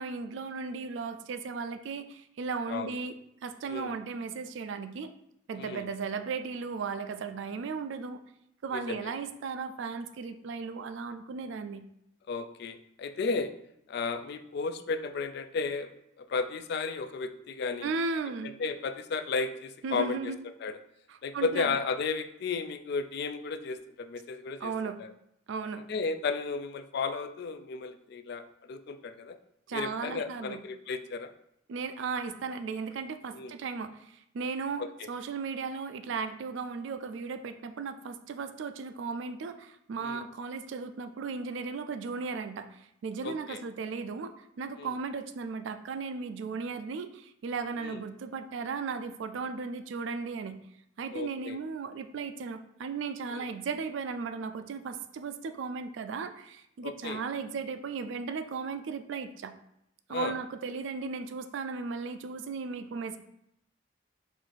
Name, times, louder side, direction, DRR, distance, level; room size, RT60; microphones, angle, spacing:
voice 1, 0.0-3.1 3.4-5.1 5.5-8.2 8.6-11.8 17.8-18.5 19.8-20.4 21.1-21.8 24.6-25.0 25.5-25.8 29.7-30.6 31.7-34.8 35.1-50.6 51.0-59.5 60.1-63.2, right 5 dB, 65° right, 9 dB, 0.3 m, -36 dB
voice 2, 5.6-5.9 8.7-9.0 12.3-13.5 13.9-15.9 16.2-17.9 18.6-20.3 20.6-20.8 21.2-24.7 25.0-25.1 25.9-28.4 28.7-29.4 29.7-31.3 33.3-33.5 34.8-35.1 40.0-40.2 43.2-43.6 44.8-44.9 47.8-48.0 51.1-51.6 53.3-53.4 56.8-57.2 60.1-60.3, left 4 dB, 55° left, 10 dB, 0.3 m, -34 dB
4.5 x 2.5 x 4.0 m, 0.77 s
head